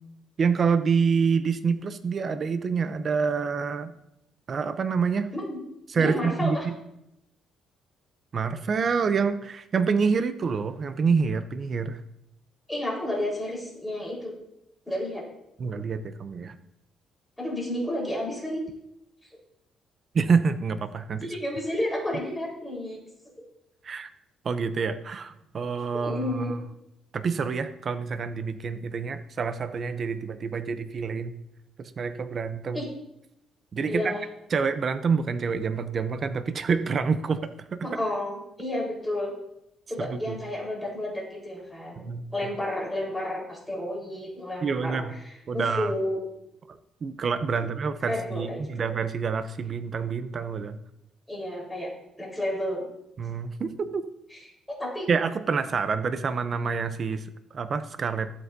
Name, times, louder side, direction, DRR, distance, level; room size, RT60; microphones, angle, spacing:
voice 1, 0.4-3.9 4.5-5.3 5.9-6.7 8.3-12.0 15.6-16.6 20.1-21.3 23.8-24.1 24.4-26.6 27.1-31.3 31.8-32.8 33.7-34.1 34.5-37.9 40.0-40.4 42.0-42.2 44.6-45.1 45.5-45.9 46.7-50.8 53.2-54.1 55.1-58.3, right 5 dB, 40° right, 10 dB, 0.7 m, -27 dB
voice 2, 5.9-6.7 12.7-14.3 14.9-15.2 17.4-18.6 21.2-23.0 25.9-26.5 32.7-32.9 33.9-34.2 37.8-39.3 39.9-46.2 47.6-47.7 48.0-48.8 51.3-51.9 52.2-52.8 54.3-54.4 54.7-55.1, left 1 dB, 5° left, -4 dB, 4.3 m, -31 dB
14.5 x 7.9 x 2.7 m, 0.82 s
cardioid pair, 115°, 0 cm